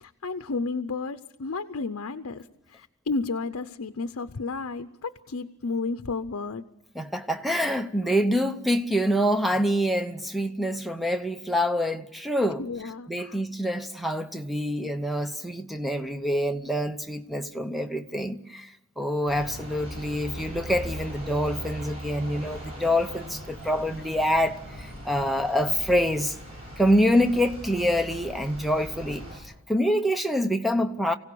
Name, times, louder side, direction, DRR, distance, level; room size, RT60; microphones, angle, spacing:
voice 1, 0.0-6.6 8.0-8.1 12.6-13.4, left 3 dB, 75° left, 0.7 m, -32 dB
voice 2, 6.9-12.6 13.1-26.4 26.8-31.1, equal, ahead, 0.7 m, -26 dB
sound 1, 19.3-29.4, equal, 30° right, 7.7 m, -39 dB
25.0 x 16.5 x 6.9 m
head